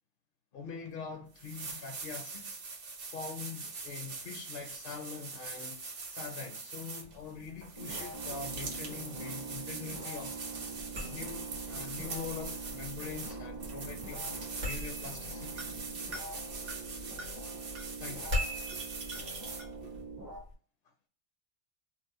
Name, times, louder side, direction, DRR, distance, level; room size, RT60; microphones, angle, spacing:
voice 1, 0.5-2.6 3.0-5.8 6.1-10.4 11.0-14.3 14.6-15.7 18.0-18.4, left 5 dB, 60° left, 0.7 m, -43 dB
sound 1, 0.9-1.0 1.4-20.0, right 4 dB, 55° right, 0.9 m, -42 dB
sound 2, 7.8-20.4, right 3 dB, 30° right, 0.5 m, -45 dB
sound 3, 10.8-20.5, left 1 dB, 75° right, 1.4 m, -42 dB
2.9 x 2.0 x 3.9 m
omnidirectional pair, 1.2 m